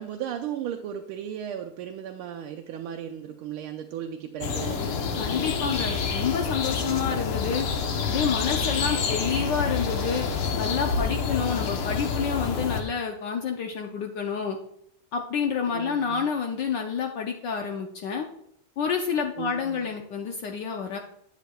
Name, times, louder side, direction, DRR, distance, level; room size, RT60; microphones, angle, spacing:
voice 1, 0.0-4.8 6.8-7.3 11.4-11.6 15.7-16.3 19.4-19.9, right 9 dB, 90° right, 3 dB, 1.5 m, -36 dB
sound 1, 4.4-12.8, left 5 dB, 85° left, 1.9 m, -28 dB
voice 2, 5.2-7.7 8.0-10.3 10.6-14.6 15.1-18.3 18.8-21.0, left 6 dB, 65° left, 3 dB, 1.2 m, -29 dB
10.5 x 8.3 x 2.3 m, 0.72 s
omnidirectional pair, 2.3 m